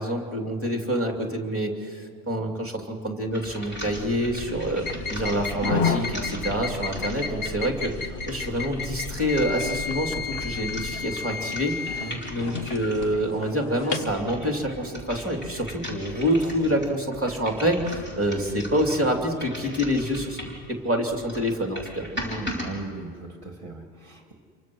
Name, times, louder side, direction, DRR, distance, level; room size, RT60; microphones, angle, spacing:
voice 1, 0.0-4.8 5.1-22.1, equal, 10° right, 2 dB, 2.8 m, -27 dB
sound 1, 3.3-13.2 13.7-20.7 21.1-22.7, equal, 10° left, 4.7 m, -39 dB
sound 2, 3.9-10.9, left 1 dB, 85° left, 1.8 m, -40 dB
sound 3, 4.8-14.1, left 5 dB, 65° left, 1.5 m, -32 dB
voice 2, 22.1-24.3, right 2 dB, 30° right, 2 dB, 2.2 m, -37 dB
28.0 x 24.0 x 6.2 m, 2.3 s
omnidirectional pair, 1.1 m